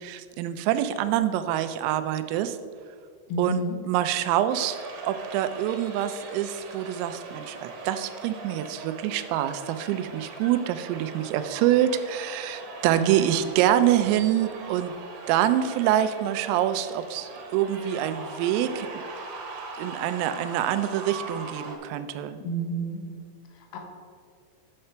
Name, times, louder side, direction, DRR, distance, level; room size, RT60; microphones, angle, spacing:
voice 1, 0.0-2.6 3.4-3.6 3.9-4.8 5.0-14.9 15.3-19.0 19.8-22.4, right 11 dB, 90° right, 10 dB, 3.3 m, -26 dB
voice 2, 3.3-3.8 13.0-13.5 22.4-23.0 23.5-23.8, right 2 dB, 85° left, 2 dB, 3.9 m, -31 dB
sound 1, 4.5-21.8, right 3 dB, 70° right, 2.6 m, -40 dB
9.5 x 6.7 x 4.4 m, 2.1 s
omnidirectional pair, 5.9 m